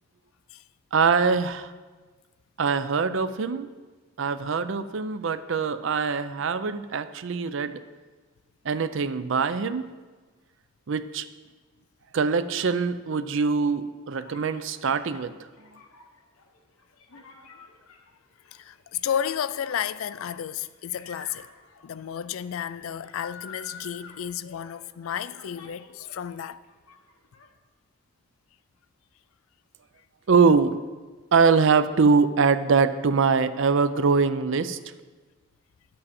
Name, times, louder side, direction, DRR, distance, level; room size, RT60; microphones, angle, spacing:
voice 1, 0.9-1.7 2.6-3.7 4.2-7.8 8.6-9.9 10.9-11.3 12.1-15.4 30.3-30.8 31.3-34.8, right 5 dB, 60° right, 0.5 m, -23 dB
sound 1, 14.1-26.3 26.6-27.5, left 4 dB, 90° left, 1.2 m, -49 dB
voice 2, 18.5-21.5 21.8-26.6, left 9 dB, 75° left, 0.3 m, -32 dB
10.5 x 7.6 x 4.3 m
head